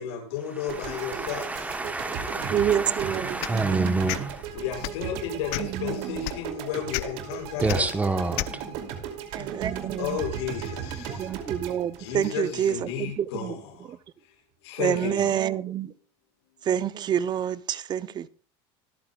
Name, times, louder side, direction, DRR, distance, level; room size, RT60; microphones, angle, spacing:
voice 1, 0.0-1.8 4.5-7.9 10.0-11.3 12.0-13.9 14.6-15.4, left 8 dB, 90° left, 6.3 m, -33 dB
voice 2, 0.6-4.5 7.6-8.7 10.9-11.3, right 3 dB, 10° right, 1.1 m, -29 dB
sound 1, 0.7-12.9, right 8 dB, 70° right, 2.7 m, -37 dB
voice 3, 2.5-4.0 5.6-6.2 9.3-10.2 11.2-13.6 13.9-14.0 14.8-15.9 16.6-18.3, right 9 dB, 30° right, 0.6 m, -28 dB
sound 2, 3.4-3.6 4.1-4.2 4.8-5.0 5.5-5.8 6.2-6.4 6.9-7.0 7.7-7.8 8.4-8.5, left 20 dB, 70° left, 0.7 m, -30 dB
25.0 x 8.6 x 2.3 m
supercardioid pair, 135°, 14 cm